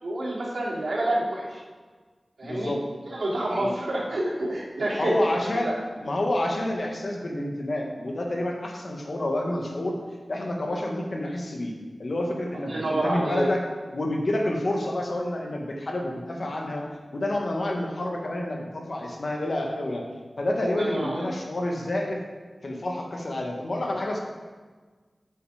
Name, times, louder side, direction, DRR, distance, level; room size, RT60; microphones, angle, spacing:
voice 1, 0.0-1.6 2.4-2.7 3.1-5.2 5.6-5.7 12.6-13.5 20.8-21.3, right 1 dB, 85° right, -6 dB, 2.9 m, -28 dB
voice 2, 2.4-2.8 3.6-3.7 4.9-5.7 6.0-9.9 10.3-11.7 12.0-13.6 13.9-16.9 17.1-20.0 20.4-22.2 22.6-24.2, left 1 dB, 60° left, 0 dB, 1.5 m, -28 dB
8.5 x 6.9 x 5.0 m, 1.4 s
wide cardioid pair, 80°, 0 cm